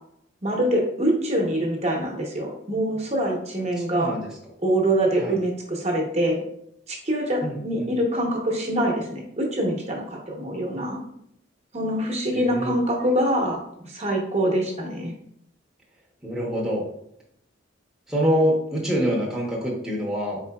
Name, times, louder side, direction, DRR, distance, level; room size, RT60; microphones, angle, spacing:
voice 1, 0.4-4.1 4.6-6.4 6.9-11.0 11.7-15.1, right 1 dB, 35° right, 0 dB, 0.8 m, -24 dB
voice 2, 3.9-4.3 5.2-5.3 7.4-7.9 12.3-12.7 16.2-16.8 18.1-20.4, equal, 5° right, -5 dB, 0.7 m, -25 dB
4.3 x 3.9 x 2.2 m, 0.73 s
head